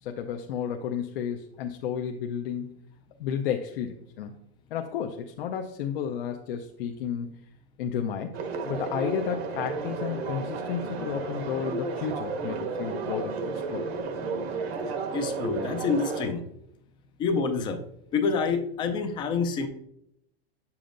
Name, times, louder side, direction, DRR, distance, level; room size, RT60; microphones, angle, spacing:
voice 1, 0.0-2.8 3.2-4.4 4.7-7.3 7.8-8.3 8.6-13.3 13.7-13.9, left 8 dB, 65° left, 3 dB, 0.6 m, -32 dB
sound 1, 8.3-16.3, right 4 dB, 75° right, 1.3 m, -32 dB
voice 2, 15.1-16.4 17.2-17.8 18.1-19.7, left 5 dB, 15° left, 7 dB, 0.4 m, -27 dB
7.7 x 7.0 x 2.5 m, 0.76 s
supercardioid pair, 155°, 31 cm